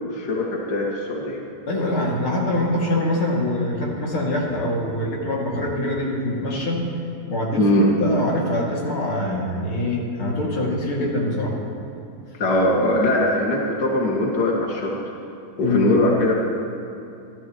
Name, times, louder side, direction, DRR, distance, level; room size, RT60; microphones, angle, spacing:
voice 1, 0.1-1.4 7.6-7.9 12.4-14.9 15.6-16.3, left 1 dB, 80° left, -3 dB, 0.9 m, -21 dB
voice 2, 1.7-6.8 7.3-11.5 15.6-15.9, left 1 dB, 40° left, -3 dB, 2.3 m, -24 dB
29.0 x 13.5 x 3.1 m, 2.7 s
omnidirectional pair, 5.2 m